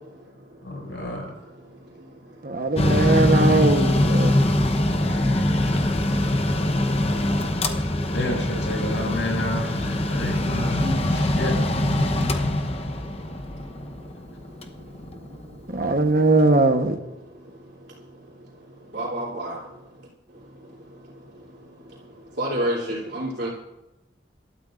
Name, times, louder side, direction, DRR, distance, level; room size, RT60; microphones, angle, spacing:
voice 1, 0.6-1.3 8.1-11.6, left 1 dB, 75° left, 0 dB, 6.6 m, -30 dB
voice 2, 2.4-4.4 15.7-17.0, right 2 dB, 50° right, 6 dB, 1.1 m, -20 dB
Mechanical fan, 2.7-16.1, left 1 dB, 35° left, 0.9 m, -23 dB
voice 3, 18.9-19.6 22.4-23.5, right 1 dB, 65° right, -6 dB, 3.1 m, -27 dB
26.0 x 12.5 x 2.6 m, 0.98 s
head